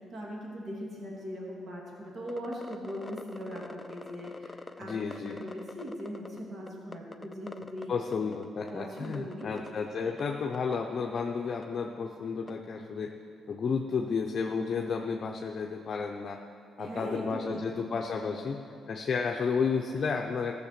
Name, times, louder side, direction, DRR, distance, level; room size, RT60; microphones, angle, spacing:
voice 1, 0.1-7.9 8.7-9.5 10.0-10.1 16.8-17.7, equal, 50° right, -3 dB, 2.6 m, -40 dB
sound 1, 2.3-6.4 6.7-7.9 8.1-8.7 9.0-9.7 10.2-10.3 10.5-10.7 11.2-11.3 11.6-11.7 12.5-12.6, left 2 dB, 20° left, 0.5 m, -44 dB
voice 2, 4.8-5.4 7.9-13.1 13.5-16.4 16.8-18.6 18.9-20.5, left 5 dB, 50° left, 1 dB, 0.7 m, -32 dB
14.5 x 6.5 x 6.8 m, 2.4 s
cardioid pair, 90°, 0 cm